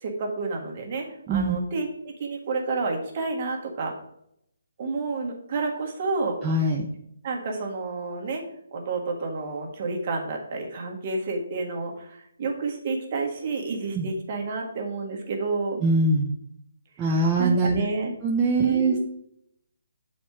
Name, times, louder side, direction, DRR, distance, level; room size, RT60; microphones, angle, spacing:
voice 1, 0.0-3.9 4.8-6.4 7.2-8.4 8.7-15.8 17.4-18.1 18.6-19.0, right 3 dB, 40° right, 1 dB, 1.6 m, -30 dB
voice 2, 1.3-1.6 6.4-6.9 13.9-14.1 15.8-16.3 17.0-17.8 18.2-19.0, right 2 dB, 20° right, -2 dB, 0.6 m, -22 dB
7.0 x 4.3 x 4.8 m, 0.75 s
hypercardioid pair, 150°, 0 cm